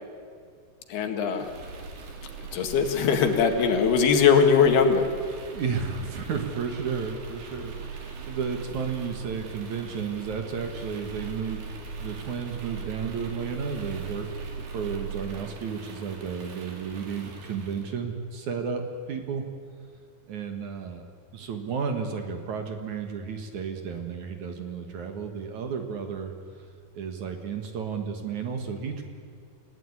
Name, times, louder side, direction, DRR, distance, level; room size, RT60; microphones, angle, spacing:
voice 1, 0.9-1.5 2.5-5.0, left 6 dB, 80° left, 5 dB, 3.8 m, -21 dB
sound 1, 1.3-18.0, right 5 dB, 80° right, 4.7 m, -40 dB
voice 2, 5.5-11.7 12.0-14.3 14.7-18.8 19.1-19.5 20.3-21.0 21.3-26.3 26.9-29.0, right 6 dB, 55° right, 5 dB, 2.6 m, -32 dB
28.0 x 16.5 x 9.7 m, 2.1 s
omnidirectional pair, 4.5 m